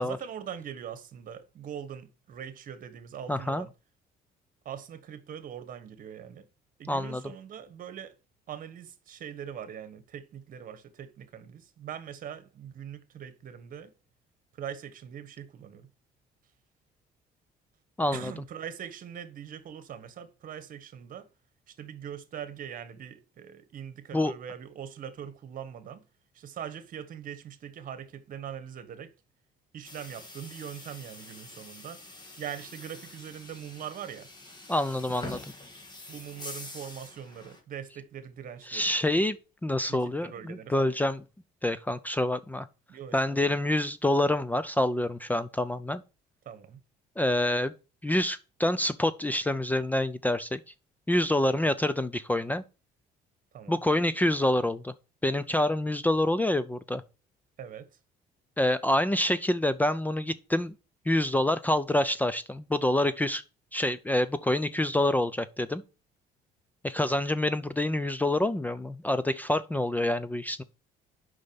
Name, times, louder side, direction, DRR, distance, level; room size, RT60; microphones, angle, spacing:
voice 1, 0.0-3.7 4.6-6.5 6.8-8.1 8.5-13.9 14.5-15.9 18.1-21.3 21.7-26.0 26.3-29.1 29.7-32.0 32.4-34.3 36.1-39.3 39.9-40.9 42.9-43.6 46.4-46.8 51.4-51.8 53.5-53.8 57.6-57.9, right 9 dB, 55° right, 1.4 m, -42 dB
voice 2, 3.3-3.6 6.9-7.2 18.0-18.3 24.1-24.3 34.7-35.4 38.7-39.4 39.6-41.2 41.6-42.7 43.1-46.0 47.2-47.7 48.0-50.6 51.1-52.6 53.7-54.9 55.2-57.0 58.6-60.7 61.1-63.4 63.7-65.8 66.8-70.6, left 1 dB, 10° left, 0.5 m, -27 dB
sound 1, 29.8-37.6, left 2 dB, 25° left, 2.4 m, -45 dB
6.4 x 5.5 x 7.0 m
cardioid pair, 110°, 17 cm